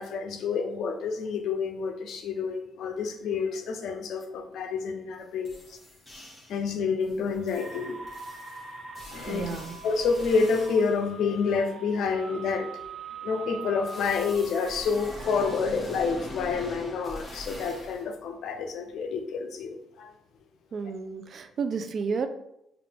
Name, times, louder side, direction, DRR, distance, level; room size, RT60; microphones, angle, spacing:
voice 1, 0.0-5.8 6.5-8.0 9.1-9.5 9.8-12.7 13.2-20.1, left 5 dB, 75° left, 6 dB, 0.5 m, -28 dB
sound 1, 5.1-5.2 5.4-6.7 7.0-11.0 13.9-18.0, left 1 dB, 15° left, 1.3 m, -43 dB
sound 2, 7.5-15.6, right 3 dB, 70° right, 1.4 m, -43 dB
voice 2, 9.2-9.8 20.7-22.3, right 5 dB, 55° right, 9 dB, 0.4 m, -31 dB
4.7 x 2.4 x 3.4 m, 0.82 s
cardioid pair, 90°, 0 cm